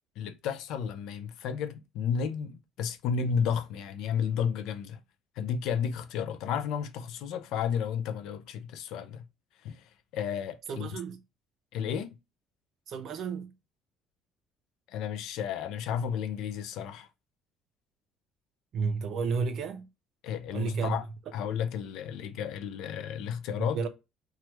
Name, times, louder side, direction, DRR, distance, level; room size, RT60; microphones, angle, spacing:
voice 1, 0.2-5.0 5.4-9.3 9.6-10.9 11.7-12.1 14.9-17.1 20.2-21.0 21.3-23.8, left 7 dB, 65° left, 0.4 m, -32 dB
voice 2, 10.7-11.2 12.9-13.5 18.7-19.8 20.5-21.0 23.7-23.9, right 5 dB, 45° right, 0.4 m, -31 dB
3.0 x 2.3 x 3.0 m
cardioid pair, 170°, 0 cm